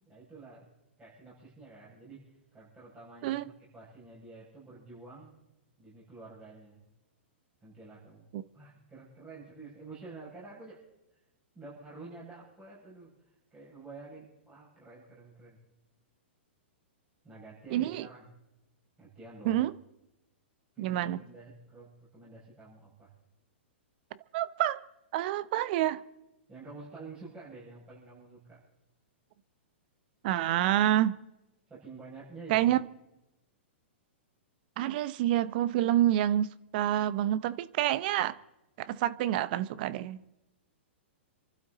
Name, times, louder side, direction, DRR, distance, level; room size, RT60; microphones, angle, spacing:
voice 1, 0.1-0.7 1.0-3.4 3.7-5.4 5.8-6.8 7.6-10.8 11.1-11.2 11.5-15.6 17.2-18.3 19.0-19.6 20.7-23.1 26.5-28.6 31.7-32.6, right 3 dB, 15° right, 6.6 m, -49 dB
voice 2, 17.7-18.0 19.4-19.7 20.8-21.2 24.3-24.8 25.1-26.0 30.2-31.2 32.5-32.8 34.8-38.3 38.8-40.2, right 13 dB, 50° right, 0.8 m, -27 dB
28.0 x 12.0 x 4.0 m
hypercardioid pair, 130°, 6 cm